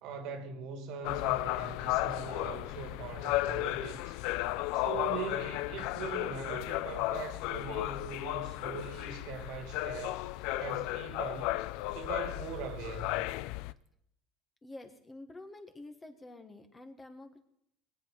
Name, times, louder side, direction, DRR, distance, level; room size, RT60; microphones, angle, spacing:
voice 1, 0.0-4.2 4.7-10.2 10.6-11.6 11.9-13.2, right 6 dB, 65° right, 2.0 m, -41 dB
sound 1, 1.0-13.7, left 17 dB, 70° left, 0.4 m, -34 dB
voice 2, 14.6-17.4, left 2 dB, 15° left, 1.4 m, -48 dB
20.5 x 8.5 x 5.2 m
supercardioid pair, 125°, 0 cm